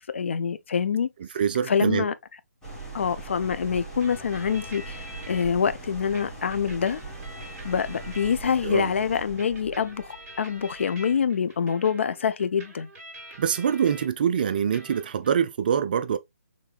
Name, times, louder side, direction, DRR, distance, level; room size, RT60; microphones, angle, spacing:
voice 1, 0.1-1.1 1.7-2.1 2.9-7.0 7.6-12.9, left 7 dB, 50° left, 0.4 m, -26 dB
voice 2, 1.3-2.1 8.6-8.9 13.4-16.2, right 8 dB, 35° right, 0.3 m, -24 dB
sound 1, 2.6-11.6, right 3 dB, 5° left, 1.3 m, -41 dB
sound 2, 4.0-5.5 6.1-8.7 9.4-14.1 14.4-15.3, equal, 15° right, 1.4 m, -46 dB
4.1 x 3.2 x 2.2 m
figure-of-eight pair, 140°, 9 cm